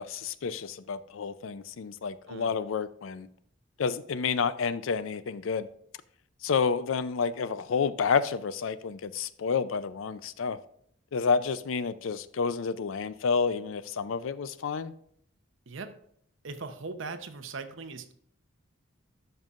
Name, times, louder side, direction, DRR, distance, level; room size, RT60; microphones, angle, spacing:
voice 1, 0.0-3.3 3.8-5.7 6.4-10.6 11.1-14.9, left 5 dB, 75° left, 0.5 m, -29 dB
voice 2, 15.7-16.0 16.4-18.1, right 4 dB, 65° right, 0.8 m, -39 dB
12.5 x 5.5 x 2.5 m
head